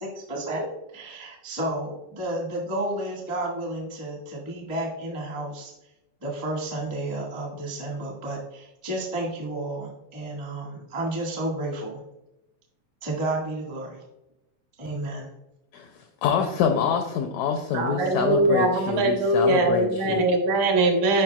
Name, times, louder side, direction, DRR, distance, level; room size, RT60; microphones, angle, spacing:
voice 1, 0.0-5.7 6.2-12.0 13.0-14.0 14.8-15.3, right 1 dB, 25° right, -2 dB, 0.6 m, -31 dB
voice 2, 16.2-20.3, left 7 dB, 85° left, 4 dB, 1.6 m, -25 dB
voice 3, 17.7-21.2, right 2 dB, 75° right, 3 dB, 2.4 m, -22 dB
8.8 x 5.3 x 2.3 m, 0.88 s
omnidirectional pair, 3.7 m